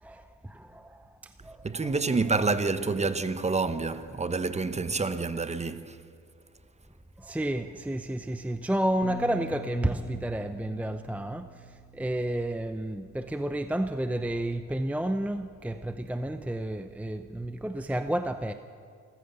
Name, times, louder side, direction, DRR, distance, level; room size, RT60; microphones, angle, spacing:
voice 1, 0.0-1.9 7.2-18.5, right 1 dB, 5° right, 0.7 m, -31 dB
voice 2, 1.6-6.0, right 3 dB, 20° right, 1.1 m, -28 dB
Bass guitar, 9.0-13.5 14.3-15.3, left 1 dB, 60° left, 1.6 m, -46 dB
26.5 x 14.5 x 6.9 m
cardioid pair, 90°, 30 cm